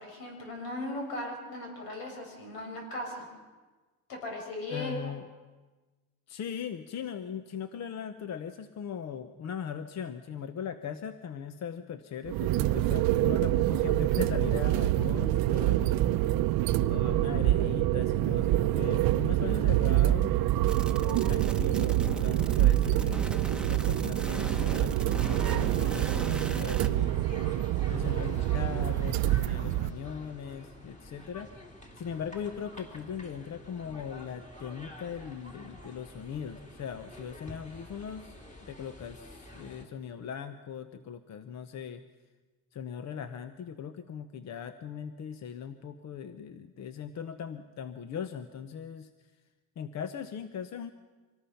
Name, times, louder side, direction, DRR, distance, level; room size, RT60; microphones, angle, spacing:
voice 1, 0.0-3.3 4.1-5.2, left 1 dB, 80° left, 1 dB, 6.9 m, -38 dB
voice 2, 4.7-5.3 6.3-16.0 16.9-20.3 21.0-27.4 27.9-31.6 32.0-42.0 42.7-49.1 49.8-50.9, left 7 dB, 50° left, 10 dB, 0.9 m, -39 dB
sound 1, 12.3-29.9, right 14 dB, 75° right, 0.7 m, -26 dB
sound 2, 20.7-26.9, right 2 dB, 5° right, 1.0 m, -38 dB
sound 3, 25.1-39.8, left 1 dB, 20° left, 3.1 m, -48 dB
25.5 x 19.0 x 5.8 m, 1.3 s
cardioid pair, 135°, 36 cm